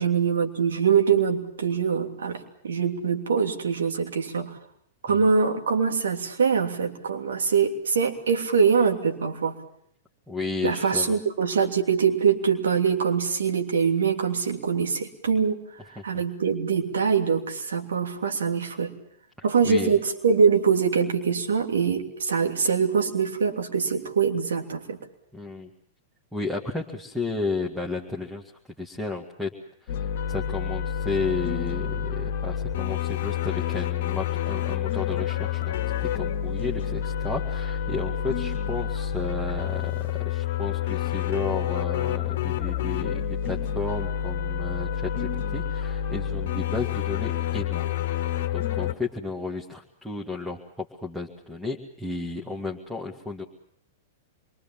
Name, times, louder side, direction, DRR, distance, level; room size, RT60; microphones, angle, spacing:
voice 1, 0.0-4.6 5.0-9.5 10.6-15.6 16.0-18.9 19.4-25.0, right 6 dB, 65° right, 4 dB, 3.0 m, -23 dB
voice 2, 10.3-11.2 16.0-16.1 19.4-20.0 25.3-25.7 26.3-28.4 28.8-29.5 29.8-47.9 48.5-53.4, left 3 dB, ahead, 0 dB, 2.1 m, -33 dB
sound 1, 29.9-48.9, left 10 dB, 50° left, 1.5 m, -28 dB
27.0 x 23.5 x 7.4 m, 0.72 s
figure-of-eight pair, 100°, 0 cm